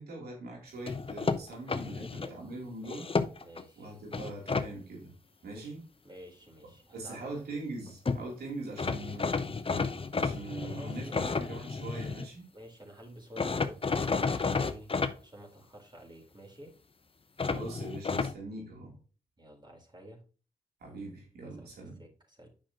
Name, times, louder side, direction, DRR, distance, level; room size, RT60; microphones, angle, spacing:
voice 1, 0.0-3.1 3.8-5.1 5.4-5.8 6.9-9.5 10.1-12.5 17.4-18.9 20.8-22.0, right 2 dB, 85° right, -1 dB, 3.1 m, -42 dB
sound 1, 0.9-2.3 2.8-3.6 4.1-4.7 7.8-7.9 8.1-8.2 8.8-12.3 13.4-15.1 17.4-18.3, left 4 dB, 35° left, 0.8 m, -31 dB
voice 2, 1.9-2.3 3.4-3.9 5.5-5.7 6.0-7.3 10.6-11.6 12.5-14.9 15.2-16.7 19.4-20.2 21.4-22.5, right 1 dB, 30° right, 0 dB, 4.1 m, -51 dB
8.9 x 6.0 x 2.9 m, 0.37 s
supercardioid pair, 45°, 16 cm